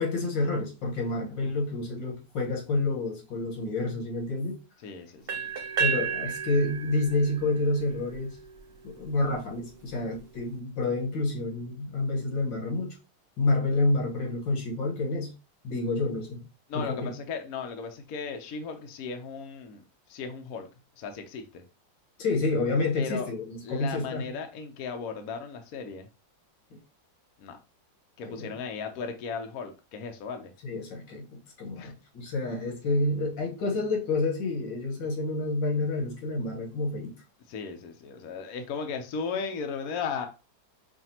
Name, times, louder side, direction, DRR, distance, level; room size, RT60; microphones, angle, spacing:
voice 1, 0.0-4.6 5.8-8.4 8.8-13.0 13.4-15.3 15.6-16.4 16.7-17.1 22.2-24.2 28.2-28.5 30.6-37.1, left 2 dB, 85° left, 1.9 m, -29 dB
voice 2, 4.8-5.5 16.7-20.7 21.0-21.6 23.0-23.3 23.6-26.1 27.4-27.6 28.2-30.5 31.8-31.9 37.5-40.3, left 5 dB, 65° left, 1.0 m, -36 dB
sound 1, 5.3-9.2, right 7 dB, 60° right, 0.6 m, -33 dB
5.6 x 2.5 x 2.8 m
omnidirectional pair, 2.0 m